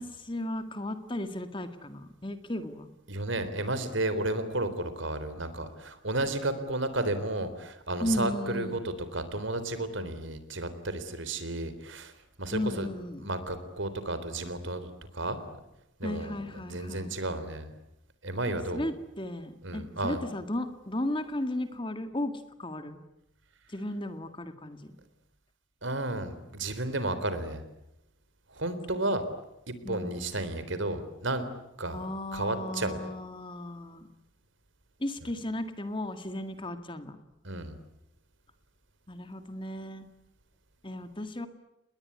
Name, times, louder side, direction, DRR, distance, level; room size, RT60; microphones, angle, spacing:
voice 1, 0.0-2.9 8.0-8.8 12.5-13.3 16.0-17.1 18.5-22.3 22.6-23.0 23.7-25.0 29.8-30.2 31.9-34.1 35.0-37.2 39.1-40.1 40.8-41.5, left 1 dB, 25° left, 9 dB, 2.0 m, -35 dB
voice 2, 3.1-12.1 12.4-12.9 13.2-15.4 16.0-16.3 16.6-17.7 18.2-18.9 19.6-20.2 25.8-27.6 28.5-29.2 29.7-31.4 31.8-32.0 32.3-33.0 37.4-37.8, right 2 dB, 65° right, 12 dB, 3.8 m, -32 dB
29.0 x 21.0 x 9.6 m, 0.89 s
head